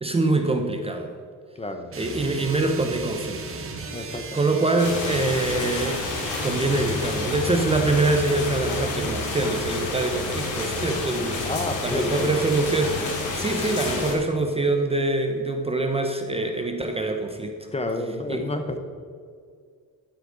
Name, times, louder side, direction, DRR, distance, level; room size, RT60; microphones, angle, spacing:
voice 1, 0.0-1.1 2.0-3.7 3.9-4.0 4.3-6.0 6.4-11.5 11.8-17.7 18.3-18.5, right 2 dB, 15° right, 4 dB, 0.8 m, -24 dB
voice 2, 1.5-1.9 3.9-4.6 11.4-12.3 17.7-18.8, left 1 dB, 20° left, 6 dB, 1.0 m, -30 dB
sound 1, 1.9-9.4, right 3 dB, 40° right, 1.5 m, -37 dB
sound 2, 4.8-14.1, left 3 dB, 60° left, 2.6 m, -29 dB
12.0 x 8.1 x 3.9 m, 2.1 s
cardioid pair, 115°, 34 cm